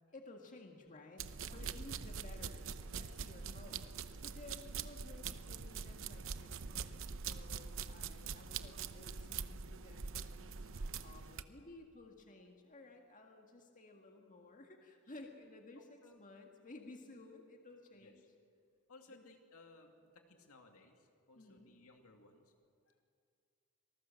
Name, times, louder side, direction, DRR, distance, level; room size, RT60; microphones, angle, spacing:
voice 1, 0.0-3.8 4.2-18.2 19.1-19.2 21.4-21.7, left 2 dB, 35° left, 2 dB, 1.9 m, -56 dB
sound 1, 1.2-11.4, right 6 dB, 65° right, 0.8 m, -44 dB
voice 2, 18.9-22.5 22.9-23.0, left 3 dB, 70° left, 3 dB, 2.5 m, -61 dB
26.0 x 19.0 x 7.7 m, 2.3 s
head